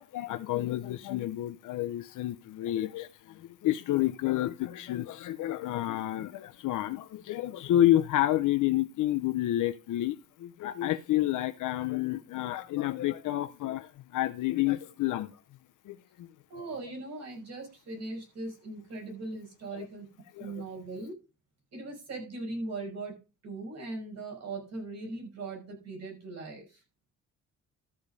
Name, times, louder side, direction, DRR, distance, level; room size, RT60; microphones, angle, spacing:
voice 1, 0.0-15.3 15.9-16.0 19.7-19.9 20.3-20.5, left 14 dB, 70° left, 0.7 m, -29 dB
voice 2, 16.5-20.1 20.4-21.1 21.7-23.1 23.4-26.6, right 2 dB, 55° right, 5.7 m, -39 dB
13.0 x 5.1 x 5.3 m
cardioid pair, 150°, 32 cm